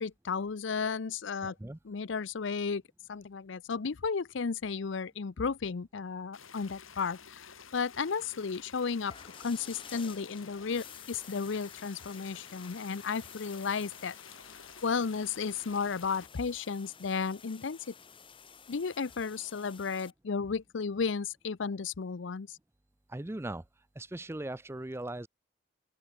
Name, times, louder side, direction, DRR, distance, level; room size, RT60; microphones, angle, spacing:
voice 1, 0.0-1.5 1.8-2.8 3.1-9.1 9.4-14.2 14.8-17.8 18.7-22.6, left 5 dB, 65° left, 0.5 m, -34 dB
voice 2, 1.4-1.8 23.1-23.6 24.0-25.3, right 1 dB, 10° right, 0.4 m, -39 dB
sound 1, 6.3-16.3, left 7 dB, 85° left, 4.7 m, -52 dB
sound 2, 9.0-20.1, left 7 dB, 25° left, 1.4 m, -52 dB
open air
head